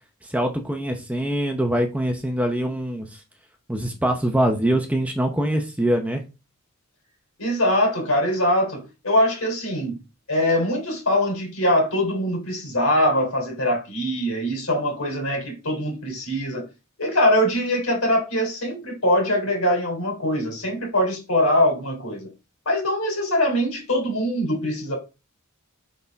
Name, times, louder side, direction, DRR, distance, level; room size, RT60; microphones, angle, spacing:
voice 1, 0.2-3.2 3.7-6.2, right 1 dB, 5° right, 0.8 m, -23 dB
voice 2, 7.4-10.0 10.3-16.6 17.0-22.3 22.6-25.0, left 1 dB, 75° left, 3.3 m, -22 dB
6.6 x 5.4 x 3.5 m
head